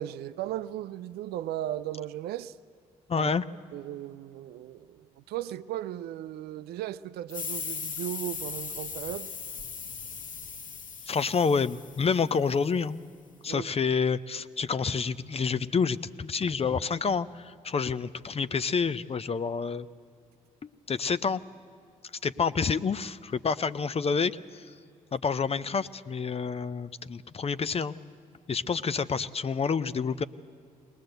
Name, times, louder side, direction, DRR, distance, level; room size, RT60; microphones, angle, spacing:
voice 1, 0.0-2.5 3.1-3.3 3.7-9.3 13.5-13.7, right 13 dB, 70° right, 0.5 m, -36 dB
voice 2, 3.1-3.4 11.1-13.0 13.4-19.9 20.6-21.4 22.2-24.6 25.1-27.9 28.5-30.2, left 5 dB, 35° left, 0.7 m, -28 dB
sound 1, 7.3-12.6, left 6 dB, 50° left, 1.1 m, -38 dB
21.0 x 19.0 x 7.9 m
hypercardioid pair, 45°, 17 cm